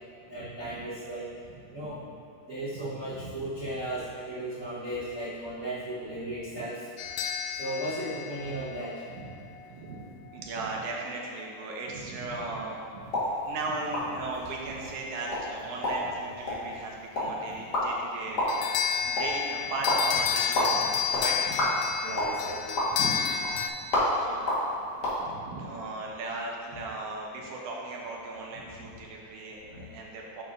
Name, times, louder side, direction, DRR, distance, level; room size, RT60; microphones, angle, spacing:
voice 1, 0.3-1.3 1.7-2.0 2.5-6.7 7.6-8.9 22.0-22.8 25.5-25.6 29.7-29.8, right 1 dB, 60° right, -11 dB, 0.8 m, -35 dB
voice 2, 1.5-2.1 3.1-3.2 6.6-6.7 9.1-10.0 10.3-18.4 19.0-21.8 22.9-23.1 24.1-24.4 25.2-30.4, right 2 dB, 90° right, -1 dB, 2.4 m, -37 dB
sound 1, 7.0-9.2 18.5-23.7, left 8 dB, 85° left, 1.5 m, -30 dB
sound 2, 13.0-25.2, left 1 dB, 40° left, 1.6 m, -31 dB
9.3 x 6.5 x 2.6 m, 2.6 s
omnidirectional pair, 3.5 m